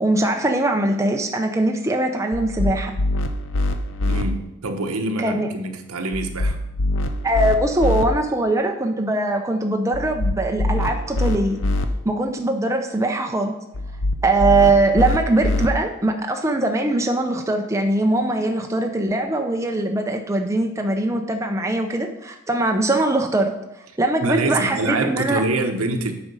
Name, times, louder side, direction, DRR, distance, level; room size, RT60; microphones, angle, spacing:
voice 1, 0.0-2.9 5.2-5.5 7.2-11.6 12.0-13.5 14.2-23.5 24.0-25.4, right 2 dB, 15° right, 3 dB, 0.5 m, -21 dB
sound 1, 2.3-4.2 6.1-8.1 9.9-11.9 13.7-15.7, left 1 dB, 65° left, 0.7 m, -24 dB
voice 2, 4.0-6.6 24.2-26.1, right 2 dB, 80° right, 5 dB, 1.0 m, -25 dB
8.1 x 5.0 x 5.4 m, 0.88 s
head